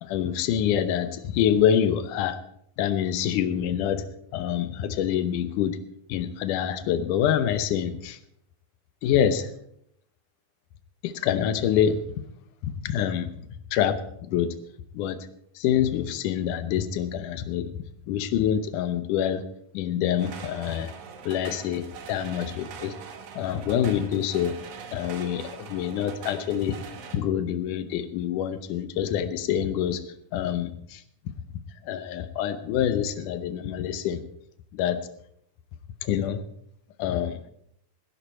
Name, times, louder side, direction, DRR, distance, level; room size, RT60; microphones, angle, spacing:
voice 1, 0.0-2.4 2.8-4.0 4.3-5.8 6.1-8.2 9.0-9.5 11.0-12.0 12.6-13.3 13.7-14.5 14.9-15.2 15.6-17.7 18.1-19.4 19.7-20.9 21.2-22.9 23.4-24.6 24.9-26.8 27.1-30.0 30.3-31.0 31.8-34.2 34.7-35.0 36.0-36.4 37.0-37.4, left 9 dB, 70° left, 12 dB, 2.1 m, -26 dB
sound 1, 20.2-27.2, right 6 dB, 60° right, 2.5 m, -42 dB
18.0 x 10.5 x 4.3 m, 0.71 s
omnidirectional pair, 4.3 m